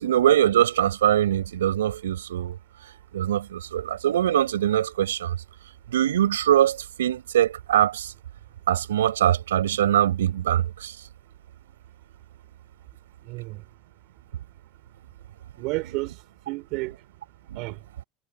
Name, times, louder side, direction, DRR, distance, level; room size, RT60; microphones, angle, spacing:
voice 1, 0.0-2.6 3.1-5.4 5.9-8.1 8.7-10.9 17.5-17.6, right 11 dB, 90° right, 7.7 m, -22 dB
voice 2, 13.2-13.6 15.6-16.9 17.5-17.8, right 24 dB, 65° right, 6.7 m, -32 dB
hypercardioid pair, 80°, 0 cm